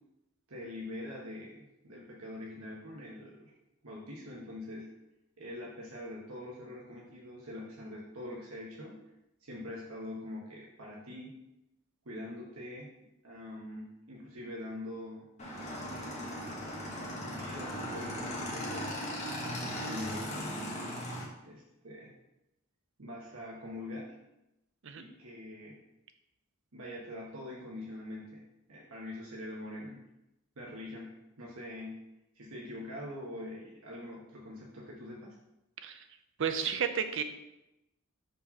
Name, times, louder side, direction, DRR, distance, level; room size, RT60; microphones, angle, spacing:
voice 1, 0.5-3.5 3.8-4.9 5.4-9.0 9.4-11.3 12.0-12.9 13.2-15.3 16.2-16.7 17.0-18.9 19.4-20.5 21.4-22.1 23.0-24.1 25.0-25.8 26.7-28.4 28.7-30.0 30.6-31.1 31.4-32.0 32.3-35.3, left 1 dB, 80° right, -4 dB, 1.3 m, -44 dB
Motorcycle / Engine, 15.4-21.2, equal, 35° left, 1.4 m, -38 dB
voice 2, 36.4-37.2, right 7 dB, 60° right, 9 dB, 0.6 m, -32 dB
5.3 x 4.1 x 5.7 m, 0.91 s
head